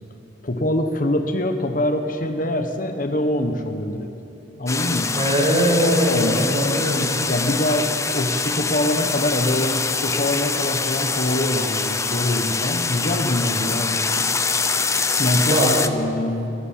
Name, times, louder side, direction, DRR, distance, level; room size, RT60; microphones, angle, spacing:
voice 1, 0.4-4.1 4.6-5.2 5.8-6.5 7.1-14.3 15.2-15.6 15.8-16.5, left 1 dB, 45° left, 6 dB, 1.3 m, -24 dB
sound 1, 4.7-15.9, left 4 dB, 15° left, 0.8 m, -24 dB
voice 2, 5.1-7.1 15.5-15.7, equal, 35° right, -2 dB, 6.5 m, -20 dB
25.0 x 17.5 x 7.6 m, 2.9 s
head